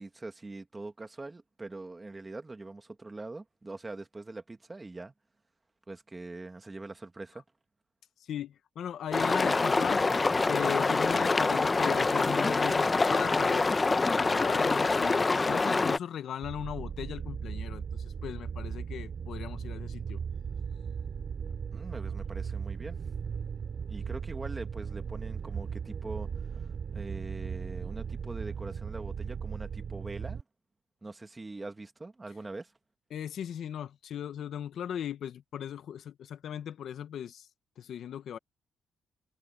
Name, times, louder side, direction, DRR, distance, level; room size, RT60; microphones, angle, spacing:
voice 1, 0.0-5.1 5.9-7.4 21.7-23.1 23.9-30.4 31.0-32.7, right 2 dB, 20° right, 2.3 m, -43 dB
voice 2, 8.3-10.0 10.5-20.2 33.1-37.5 37.8-38.4, left 9 dB, 65° left, 1.2 m, -38 dB
sound 1, 9.1-16.0, left 3 dB, 25° left, 0.8 m, -26 dB
sound 2, 16.4-30.4, right 6 dB, 50° right, 3.3 m, -37 dB
cardioid pair, 90°, 0 cm